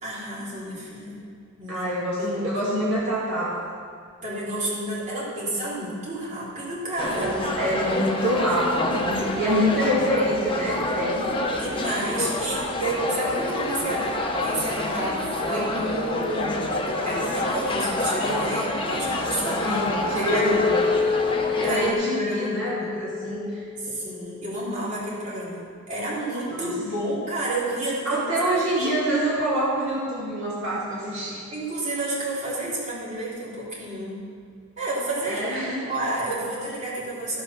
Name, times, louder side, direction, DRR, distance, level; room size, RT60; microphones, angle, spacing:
voice 1, 0.0-1.3 1.6-1.9 2.2-2.4 4.2-7.7 8.9-9.5 9.8-10.1 11.5-16.6 17.0-20.6 21.6-22.9 23.8-28.3 28.7-28.9 31.5-34.2 34.8-35.5 35.8-37.4, right 1 dB, 35° right, -7 dB, 3.4 m, -30 dB
voice 2, 1.7-3.6 7.1-11.3 19.5-20.8 21.6-24.0 26.5-26.7 28.0-31.5 35.2-35.9, right 1 dB, 65° right, -8 dB, 2.6 m, -26 dB
sound 1, 7.0-21.9, left 2 dB, 25° left, 1.1 m, -27 dB
Chink clink, 20.3-24.5, left 5 dB, 55° left, 1.1 m, -27 dB
15.5 x 5.9 x 6.0 m, 2.1 s
head